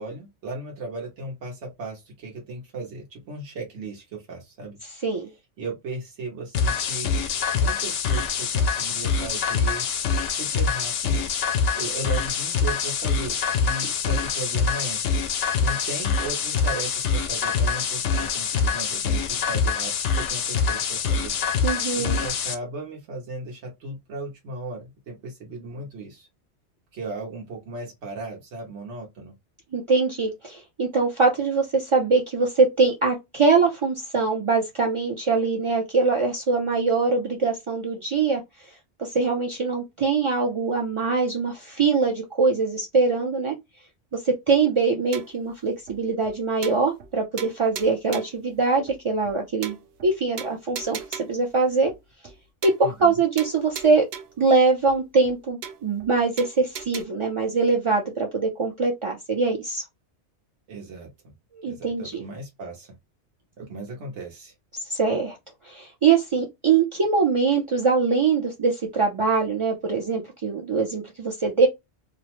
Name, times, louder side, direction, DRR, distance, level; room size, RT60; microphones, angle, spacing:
voice 1, 0.0-4.8 5.6-7.1 7.5-9.9 10.3-11.3 11.7-15.0 15.6-21.3 21.9-26.3 26.9-29.3 52.8-53.2 60.7-61.1 61.7-62.9 63.6-64.5, right 2 dB, 90° right, 1.2 m, -36 dB
sound 1, 6.5-22.5, left 5 dB, 90° left, 0.9 m, -25 dB
voice 2, 21.6-22.2 29.7-38.4 39.0-43.5 44.2-49.8 50.0-51.9 52.6-54.0 54.4-59.8 61.5-62.2 64.9-65.4 65.6-71.7, right 4 dB, 50° right, 0.3 m, -23 dB
sound 2, 45.1-45.5 45.9-46.0 46.2-46.3 46.6-47.1 47.4-48.4 48.9-49.0 49.2-49.3 49.6-50.1 50.4-51.5 51.9-52.0 52.2-52.4 52.6-53.1 53.4-54.4 54.9-55.0 55.2-55.3 55.6-56.1 56.4-57.0, right 8 dB, 70° right, 0.8 m, -38 dB
2.8 x 2.0 x 2.9 m
omnidirectional pair, 1.2 m